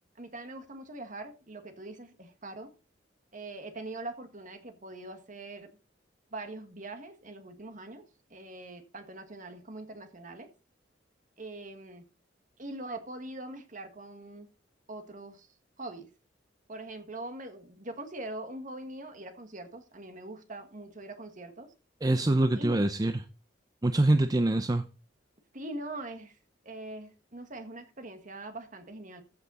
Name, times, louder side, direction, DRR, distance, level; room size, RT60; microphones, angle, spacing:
voice 1, 0.2-2.7 3.3-5.7 6.3-8.1 8.3-10.5 11.4-12.0 12.6-14.5 14.9-15.5 15.8-16.1 16.7-21.7 22.6-22.8 25.5-26.4 26.6-29.2, right 2 dB, 45° right, 1.8 m, -42 dB
voice 2, 22.0-23.2 23.8-24.9, right 1 dB, 20° right, 0.6 m, -25 dB
14.5 x 5.8 x 4.1 m
head